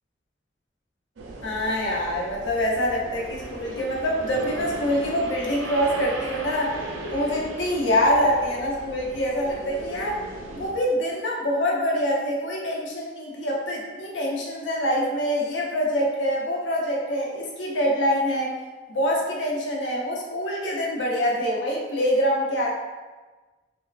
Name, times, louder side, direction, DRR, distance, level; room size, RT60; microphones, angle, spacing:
sound 1, 1.2-10.7, right 1 dB, 80° right, 0.5 m, -37 dB
voice 1, 1.4-6.8 7.1-10.2 10.5-18.6 18.9-22.7, equal, 80° left, -2 dB, 0.7 m, -25 dB
4.4 x 2.2 x 2.4 m, 1.3 s
head